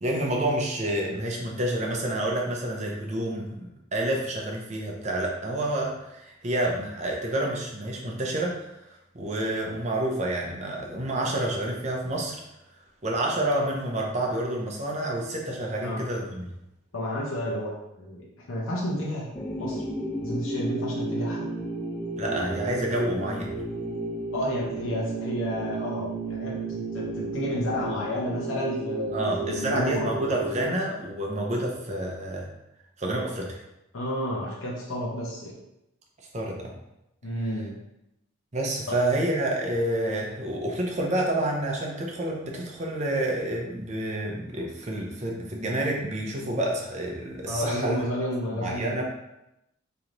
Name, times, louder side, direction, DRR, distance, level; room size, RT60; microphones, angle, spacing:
voice 1, 0.0-8.7 9.1-12.4 13.0-16.5 22.2-23.5 29.1-32.5 33.0-33.6 36.3-36.7 38.5-48.0 48.6-49.0, right 1 dB, 30° right, -1 dB, 0.6 m, -28 dB
voice 2, 16.9-17.7 18.0-19.3 19.6-19.8 20.2-21.5 24.3-30.3 33.9-35.6 37.2-37.8 38.9-39.0 47.5-49.0, equal, 70° left, -4 dB, 0.8 m, -31 dB
sound 1, 19.3-30.7, right 2 dB, 5° left, 0.4 m, -33 dB
3.2 x 2.9 x 3.8 m, 0.88 s
head